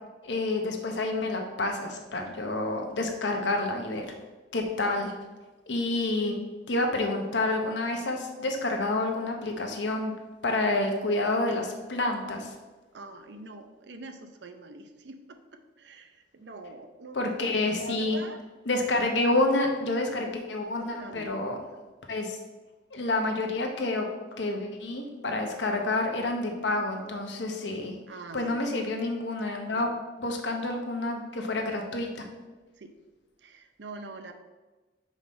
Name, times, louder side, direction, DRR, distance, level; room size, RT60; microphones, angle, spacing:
voice 1, 0.2-4.1 4.5-5.1 5.7-6.4 6.7-10.2 10.4-12.5 17.1-18.2 18.7-21.6 22.1-22.4 22.9-24.1 24.4-28.0 28.3-29.9 30.2-32.1, left 2 dB, 80° left, 3 dB, 1.0 m, -28 dB
voice 2, 12.9-17.5 17.8-18.4 20.0-20.2 20.8-21.3 28.1-28.6 29.7-29.9 32.8-32.9 33.4-34.3, right 2 dB, 70° right, 7 dB, 0.6 m, -44 dB
5.5 x 4.9 x 4.3 m, 1.2 s
head